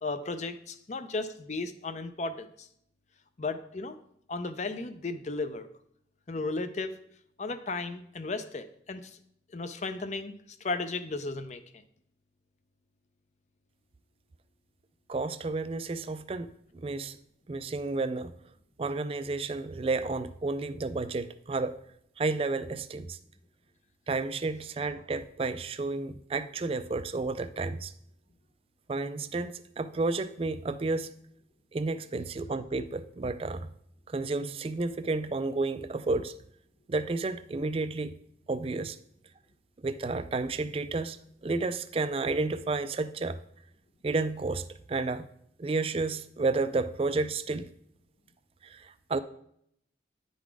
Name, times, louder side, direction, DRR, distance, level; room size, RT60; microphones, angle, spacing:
voice 1, 0.0-2.7 3.4-4.0 4.3-5.7 6.3-6.9 7.4-9.2 9.5-10.3 10.6-11.6, left 3 dB, 40° left, 10 dB, 0.5 m, -35 dB
voice 2, 15.1-17.2 17.5-18.3 18.8-21.8 22.2-23.2 24.1-27.9 28.9-31.1 31.7-33.7 34.1-36.3 36.9-38.2 38.5-39.0 39.8-41.2 41.4-43.4 44.0-45.3 45.6-47.7 48.6-49.2, right 3 dB, 30° right, 12 dB, 0.3 m, -31 dB
9.8 x 4.0 x 4.7 m, 0.70 s
head